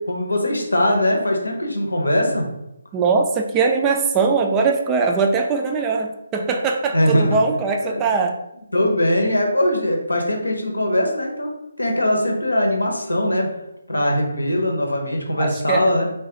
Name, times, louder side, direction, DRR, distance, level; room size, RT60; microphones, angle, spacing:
voice 1, 0.0-2.5 6.9-7.4 7.8-8.1 8.7-11.5 11.8-13.5 13.9-16.1, left 1 dB, 90° left, 1 dB, 0.7 m, -21 dB
voice 2, 2.9-8.4 15.4-15.9, right 4 dB, 15° right, 3 dB, 0.3 m, -21 dB
3.1 x 2.3 x 2.9 m, 0.85 s
figure-of-eight pair, 150°, 0 cm